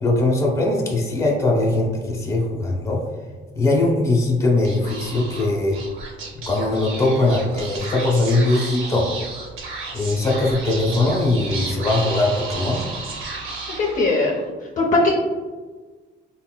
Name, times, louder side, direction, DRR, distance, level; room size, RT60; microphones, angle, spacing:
voice 1, 0.0-3.0 3.5-5.8 6.5-9.1 9.9-12.8, left 2 dB, 15° left, -2 dB, 0.8 m, -20 dB
Speech / Whispering, 4.6-14.4, right 3 dB, 85° right, 0.7 m, -33 dB
voice 2, 13.8-15.1, left 2 dB, 40° left, -3 dB, 0.6 m, -20 dB
3.6 x 2.2 x 2.2 m, 1.3 s
cardioid pair, 90°, 20 cm